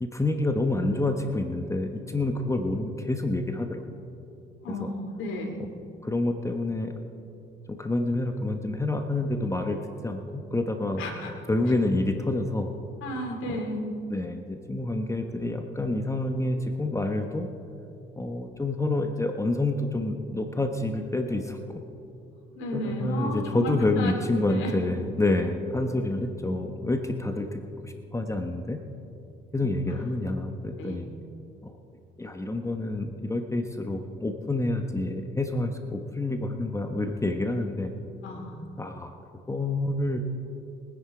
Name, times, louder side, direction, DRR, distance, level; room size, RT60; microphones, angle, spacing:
voice 1, 0.0-3.8 4.8-4.9 6.0-6.9 7.7-9.8 10.0-11.0 11.5-12.7 13.5-13.6 14.1-17.5 18.2-21.6 22.7-28.8 29.5-31.1 31.6-31.7 32.2-37.9 38.8-39.1 39.5-40.2, left 2 dB, 15° left, 5 dB, 1.0 m, -28 dB
voice 2, 4.6-5.5 11.0-11.3 13.0-13.8 22.5-24.1 24.5-24.8 29.9-30.0 30.8-31.0 38.2-38.6, equal, 85° left, 2 dB, 2.7 m, -33 dB
22.5 x 10.0 x 4.9 m, 2.7 s
cardioid pair, 90°, 20 cm